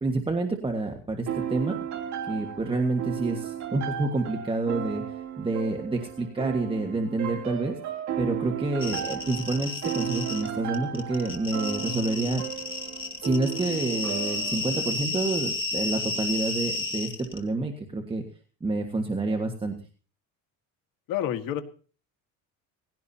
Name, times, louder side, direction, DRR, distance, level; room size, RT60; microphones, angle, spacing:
voice 1, 0.0-1.8 2.2-5.0 5.4-7.8 8.2-12.4 13.2-18.2 18.6-19.7, right 2 dB, 15° right, 3 dB, 1.7 m, -28 dB
sound 1, 1.3-14.9, right 9 dB, 50° right, 3.1 m, -35 dB
sound 2, 8.8-10.5 10.7-17.4, left 2 dB, 15° left, 2.4 m, -32 dB
voice 2, 21.1-21.6, left 11 dB, 75° left, 6 dB, 1.9 m, -29 dB
19.5 x 16.5 x 2.9 m, 0.39 s
cardioid pair, 140°, 34 cm